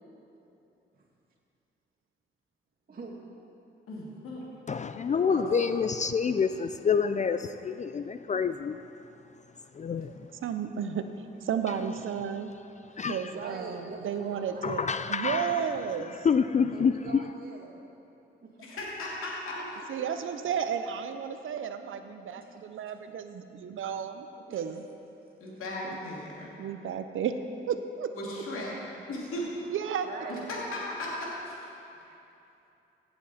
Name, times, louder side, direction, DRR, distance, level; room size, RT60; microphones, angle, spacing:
voice 1, 2.9-3.4 5.3-5.5 12.9-14.8 16.7-17.9 18.4-18.9 19.5-20.1 22.3-22.6 22.9-23.0 24.5-24.8 30.0-30.6 32.0-32.2, right 3 dB, 45° right, -4 dB, 2.1 m, -44 dB
voice 2, 3.9-4.4 5.1-5.4 10.8-10.9 18.6-19.6 25.4-26.5 28.1-28.7 29.1-29.5 30.3-30.4 30.7-31.6, left 1 dB, 80° left, -5 dB, 2.6 m, -36 dB
voice 3, 4.7-8.8 9.8-10.1 13.0-13.2 14.6-15.6 16.2-17.0, left 6 dB, 35° left, 11 dB, 0.4 m, -27 dB
voice 4, 10.4-11.1 11.4-12.5 13.1-14.8 15.1-16.2 19.9-24.8 25.8-26.0 26.6-27.3 27.7-28.1 29.7-30.1, right 8 dB, 70° right, 9 dB, 0.7 m, -33 dB
16.5 x 7.0 x 4.2 m, 2.8 s
supercardioid pair, 50°, 21 cm